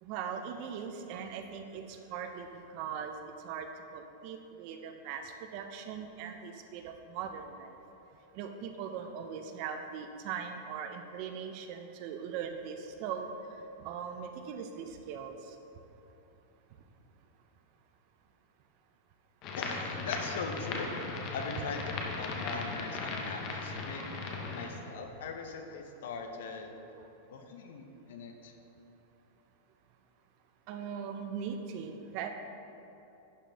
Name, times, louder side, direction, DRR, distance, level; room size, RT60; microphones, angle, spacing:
voice 1, 0.0-7.8 8.3-15.6 24.0-24.6 26.9-27.1 30.7-32.3, right 7 dB, 40° right, 6 dB, 0.4 m, -40 dB
sound 1, 19.4-24.7, left 3 dB, 30° left, 0.7 m, -37 dB
voice 2, 19.6-20.9 21.3-24.1 24.5-26.7 27.3-28.5, left 4 dB, 70° left, 5 dB, 0.7 m, -40 dB
10.5 x 4.3 x 3.4 m, 2.9 s
supercardioid pair, 170°, 0 cm